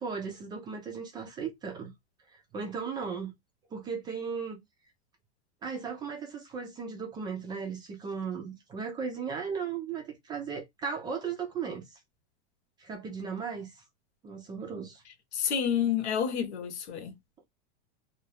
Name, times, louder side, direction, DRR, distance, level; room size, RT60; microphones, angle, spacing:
voice 1, 0.0-1.9 2.5-3.3 3.7-4.6 5.6-11.8 12.8-13.7 14.2-15.0, right 6 dB, 15° right, 0.3 m, -36 dB
voice 2, 15.3-17.1, left 8 dB, 85° left, 1.0 m, -29 dB
2.4 x 2.2 x 3.2 m
supercardioid pair, 150°, 33 cm